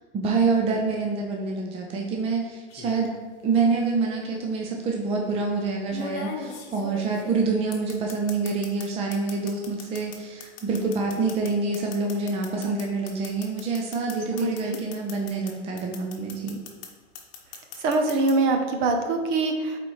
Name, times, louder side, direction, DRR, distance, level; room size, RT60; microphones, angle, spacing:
voice 1, 0.1-3.1 3.4-16.6, right 4 dB, 15° right, 0 dB, 0.6 m, -26 dB
sound 1, 2.7-3.1 4.3-4.4 5.9-8.9 9.1-15.5 15.8-16.9 17.1-18.3, left 5 dB, 35° left, 1.1 m, -38 dB
voice 2, 14.3-14.8 17.8-19.8, right 3 dB, 45° right, 4 dB, 1.0 m, -24 dB
8.3 x 4.1 x 3.2 m, 1.4 s
hypercardioid pair, 130°, 34 cm